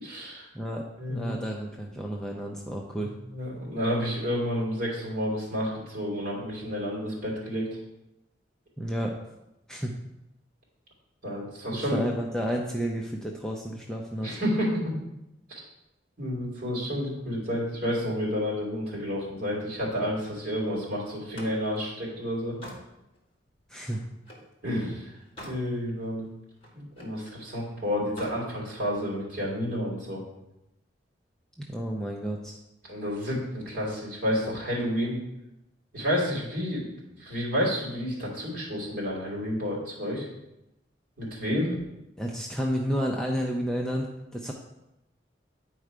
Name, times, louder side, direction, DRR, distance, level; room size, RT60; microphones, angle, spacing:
voice 1, 0.0-0.5 1.0-1.4 3.3-7.7 11.2-12.0 14.2-14.9 15.5-15.6 16.2-22.5 24.6-25.1 25.4-26.2 26.7-30.2 32.9-35.2 35.9-36.9 37.2-40.3 41.2-41.8, equal, 45° right, -5 dB, 3.1 m, -30 dB
voice 2, 0.5-3.1 8.8-9.1 9.7-9.9 11.7-14.4 23.7-24.0 31.6-32.6 42.2-44.5, equal, 5° left, -1 dB, 0.6 m, -31 dB
Slam, 21.1-24.5 25.0-25.7 26.0-27.2 28.0-28.4, equal, 30° left, 1.8 m, -46 dB
9.4 x 4.5 x 4.9 m, 0.90 s
head